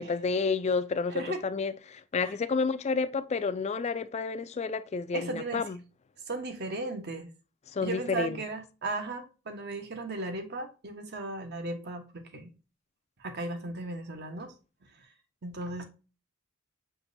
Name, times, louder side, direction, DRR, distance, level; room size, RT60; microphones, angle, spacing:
voice 1, 0.0-5.8 7.7-8.4, left 4 dB, 30° left, 0.3 m, -30 dB
voice 2, 1.1-1.4 2.2-2.3 5.1-5.6 6.3-7.3 7.8-12.5 13.2-14.5 15.0-15.1 15.4-15.8, right 2 dB, 50° right, 0.9 m, -36 dB
5.9 x 3.0 x 2.5 m
head